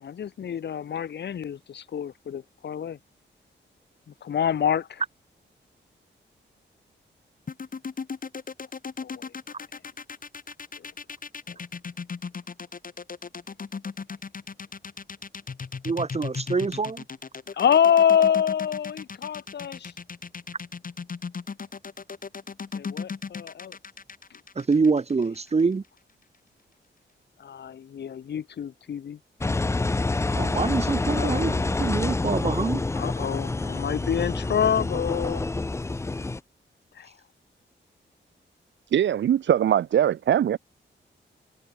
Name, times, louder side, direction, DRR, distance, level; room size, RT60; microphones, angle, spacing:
voice 1, 0.0-3.0 4.2-5.0 9.0-9.3 17.6-19.9 22.7-23.8 27.4-29.2 31.1-31.7 32.9-35.4 37.0-37.1, left 8 dB, 60° left, 0.9 m, -26 dB
sound 1, 7.5-25.6, left 5 dB, 45° left, 6.6 m, -36 dB
voice 2, 15.8-17.0 24.6-25.8 30.4-32.8, right 4 dB, 35° right, 2.0 m, -25 dB
Engine, 29.4-36.4, left 2 dB, 15° left, 0.5 m, -27 dB
voice 3, 38.9-40.6, right 10 dB, 75° right, 0.6 m, -21 dB
wide cardioid pair, 135°, 19 cm